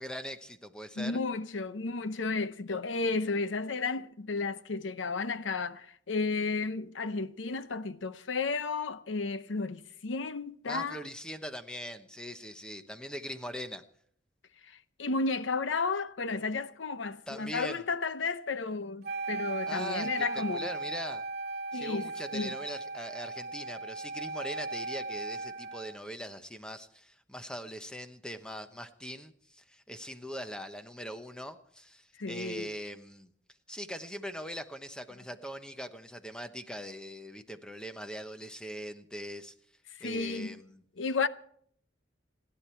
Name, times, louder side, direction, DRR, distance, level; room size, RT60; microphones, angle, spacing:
voice 1, 0.0-1.2 10.7-13.8 17.3-17.8 19.7-21.2 21.7-33.3 33.7-39.5 40.0-40.8, equal, 5° left, 0.9 m, -41 dB
voice 2, 1.0-11.1 14.7-20.7 21.7-22.6 32.2-32.7 39.9-40.6 41.0-41.3, left 4 dB, 85° left, 0.8 m, -33 dB
Wind instrument woodwind instrument, 19.0-26.0, right 3 dB, 60° right, 0.6 m, -37 dB
29.5 x 10.0 x 4.5 m
head